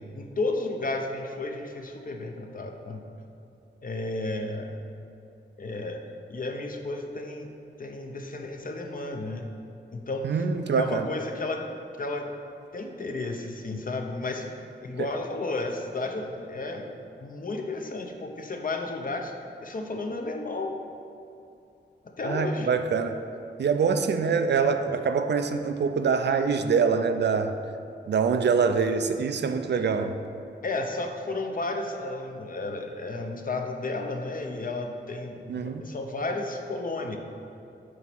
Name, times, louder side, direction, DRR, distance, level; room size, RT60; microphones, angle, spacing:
voice 1, 0.0-3.0 3.8-4.8 5.6-7.5 7.8-9.5 9.9-10.3 10.7-11.6 12.0-12.3 12.7-14.5 14.8-16.9 17.2-19.3 19.6-20.7 22.2-22.7 30.6-37.2, left 2 dB, 50° left, 3 dB, 0.7 m, -32 dB
voice 2, 10.2-11.1 15.0-15.1 22.2-23.2 23.6-27.6 28.1-30.1 35.5-35.9, right 5 dB, 65° right, 8 dB, 0.4 m, -25 dB
7.3 x 3.0 x 6.0 m, 2.6 s
wide cardioid pair, 90°, 19 cm